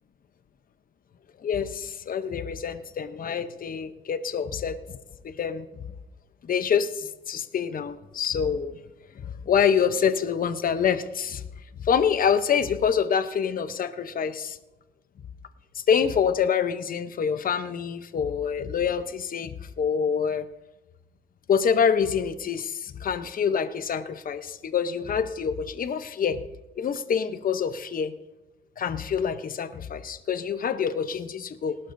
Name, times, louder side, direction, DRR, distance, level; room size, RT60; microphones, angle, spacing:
voice 1, 1.4-5.0 5.2-5.7 6.4-8.8 9.2-11.4 11.8-14.6 15.7-20.5 21.5-26.4 26.8-28.1 28.8-31.8, left 7 dB, 45° left, 12 dB, 0.8 m, -26 dB
19.5 x 12.0 x 2.6 m, 1.0 s
cardioid pair, 90°, 20 cm